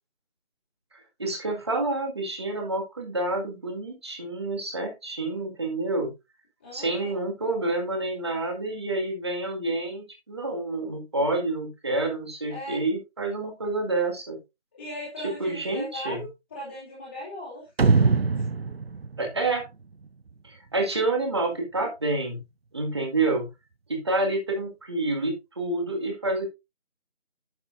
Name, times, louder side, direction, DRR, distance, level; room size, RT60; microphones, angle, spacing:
voice 1, 0.9-6.1 6.7-14.4 15.2-16.2 19.2-19.7 20.4-22.4 22.7-23.5 23.9-26.5, right 2 dB, 25° right, 3 dB, 1.8 m, -28 dB
voice 2, 6.6-7.2 12.5-12.8 14.7-17.7 18.0-18.4, left 1 dB, 10° left, -9 dB, 2.3 m, -38 dB
sound 1, 17.8-20.3, right 4 dB, 60° right, 0.6 m, -23 dB
10.5 x 7.3 x 2.5 m, 0.23 s
figure-of-eight pair, 165°, 34 cm